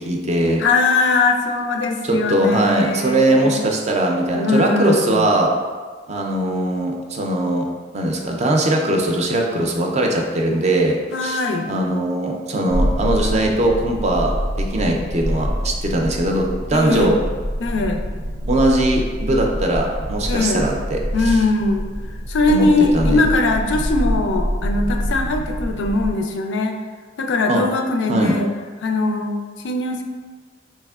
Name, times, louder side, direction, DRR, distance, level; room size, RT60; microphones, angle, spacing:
voice 1, 0.0-0.6 2.1-5.5 6.1-7.7 7.9-11.0 11.2-11.4 11.7-17.1 18.5-21.4 22.5-22.7 22.9-23.2 27.5-27.6 28.1-28.3, right 1 dB, 40° right, 1 dB, 0.4 m, -20 dB
voice 2, 0.6-3.6 4.3-5.3 11.1-11.7 16.7-17.2 17.6-18.1 20.3-20.7 21.1-21.9 22.3-26.8 27.2-28.5 28.8-29.3 29.6-30.0, left 3 dB, 80° left, 4 dB, 0.4 m, -20 dB
sound 1, 12.7-26.1, equal, 80° right, 0.7 m, -26 dB
4.2 x 3.1 x 2.3 m, 1.5 s
head